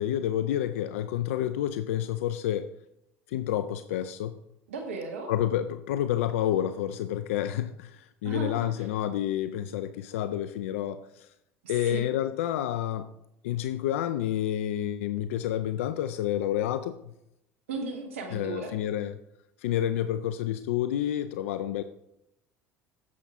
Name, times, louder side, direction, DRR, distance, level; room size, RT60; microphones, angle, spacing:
voice 1, 0.0-2.7 3.3-4.3 5.3-11.3 11.7-13.1 13.4-17.0 18.3-19.2 19.6-21.8, left 11 dB, 80° left, 11 dB, 0.4 m, -29 dB
voice 2, 4.7-5.3 8.2-8.9 11.6-12.0 17.7-18.7, right 4 dB, 90° right, 3 dB, 1.2 m, -36 dB
9.4 x 7.3 x 3.6 m, 0.81 s
hypercardioid pair, 75°, 7 cm